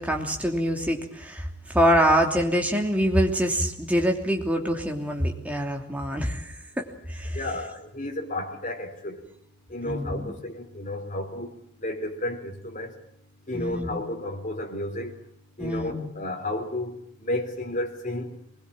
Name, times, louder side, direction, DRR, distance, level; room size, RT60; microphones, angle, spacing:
voice 1, 0.0-7.4 9.8-10.3 13.5-14.0 15.6-16.1, equal, 5° right, 2 dB, 3.0 m, -25 dB
voice 2, 7.3-9.2 9.7-11.5 11.8-12.9 13.5-15.1 15.6-18.3, left 1 dB, 40° left, 3 dB, 4.0 m, -32 dB
23.5 x 21.0 x 8.9 m, 0.70 s
head